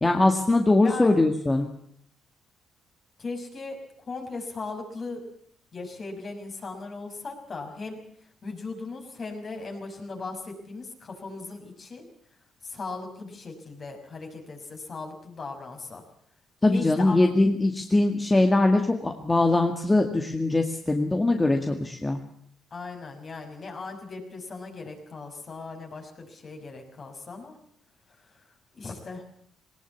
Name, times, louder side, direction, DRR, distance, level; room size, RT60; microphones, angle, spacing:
voice 1, 0.0-1.7 16.6-22.2, left 2 dB, 20° left, 4 dB, 2.1 m, -22 dB
voice 2, 3.2-5.2 5.7-8.0 8.4-12.1 12.6-16.0 16.7-17.2 22.7-27.6 28.7-29.2, left 3 dB, 45° left, 3 dB, 6.0 m, -38 dB
19.0 x 19.0 x 8.5 m, 0.68 s
cardioid pair, 90°, 0 cm